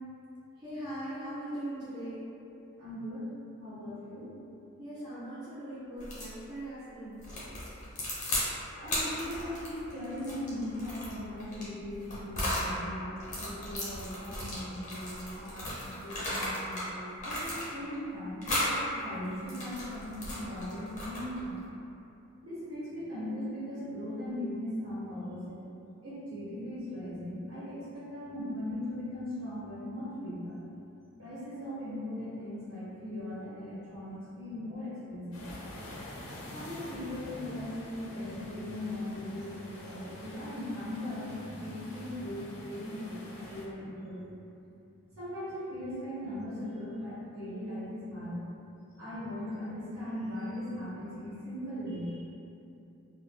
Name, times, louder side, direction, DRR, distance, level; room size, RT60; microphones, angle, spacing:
voice 1, 0.6-2.3 4.8-7.3, right 1 dB, 20° right, -13 dB, 0.4 m, -40 dB
voice 2, 2.8-3.3 3.6-4.3 8.8-18.7 19.0-21.6 22.4-25.6 26.0-30.6 31.2-35.6 36.5-44.3 45.1-48.4 49.0-52.2, left 1 dB, 80° right, -11 dB, 1.0 m, -39 dB
sound 1, 6.0-6.3 7.2-8.5 8.8-12.7 13.2-16.9 17.2-17.9 18.4-18.8 19.3-21.4, left 1 dB, 35° left, 0.6 m, -35 dB
sound 2, 35.3-43.7, left 1 dB, 75° left, 0.4 m, -47 dB
2.1 x 2.0 x 3.1 m, 2.8 s
head